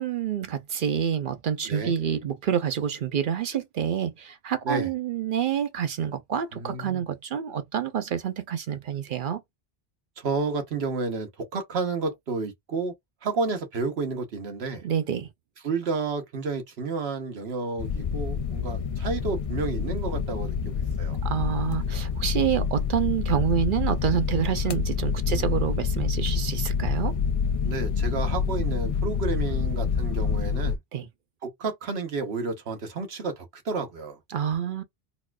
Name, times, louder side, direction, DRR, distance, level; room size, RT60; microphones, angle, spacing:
voice 1, 0.0-9.4 14.8-15.3 21.2-27.1 30.9-31.1 34.3-34.8, right 8 dB, 60° right, 0.7 m, -28 dB
voice 2, 6.5-7.0 10.2-12.9 13.2-14.8 15.6-21.2 25.2-25.6 27.6-30.8 31.4-34.2, right 4 dB, 85° right, 1.2 m, -31 dB
sound 1, 17.8-30.8, left 6 dB, 55° left, 0.4 m, -27 dB
4.1 x 2.4 x 2.3 m
omnidirectional pair, 1.0 m